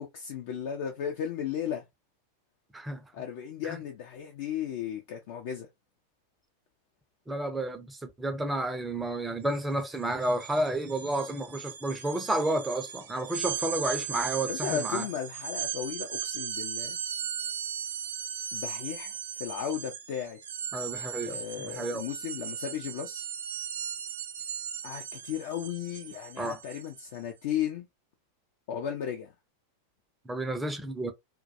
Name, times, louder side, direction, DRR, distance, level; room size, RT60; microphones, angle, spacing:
voice 1, 0.0-1.8 3.1-5.7 14.4-17.0 18.5-20.4 21.3-23.3 24.8-27.9 28.7-29.3, left 9 dB, 50° left, 0.4 m, -35 dB
voice 2, 7.3-15.1 20.7-22.0 26.4-26.6 30.3-31.1, right 1 dB, 10° right, 0.5 m, -31 dB
sound 1, 9.5-9.6 9.9-27.2, right 8 dB, 65° right, 0.4 m, -37 dB
2.2 x 2.2 x 2.6 m
figure-of-eight pair, 90°, 0 cm